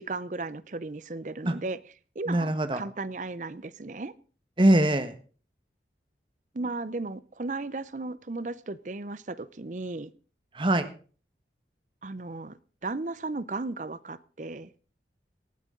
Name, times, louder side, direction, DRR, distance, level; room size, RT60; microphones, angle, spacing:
voice 1, 0.0-1.8 2.2-4.1 6.5-10.1 12.0-14.7, right 3 dB, 45° right, 18 dB, 0.6 m, -35 dB
voice 2, 2.3-2.8 4.6-5.1 10.5-10.9, right 1 dB, 30° right, 10 dB, 1.3 m, -22 dB
19.0 x 13.0 x 3.8 m, 0.39 s
head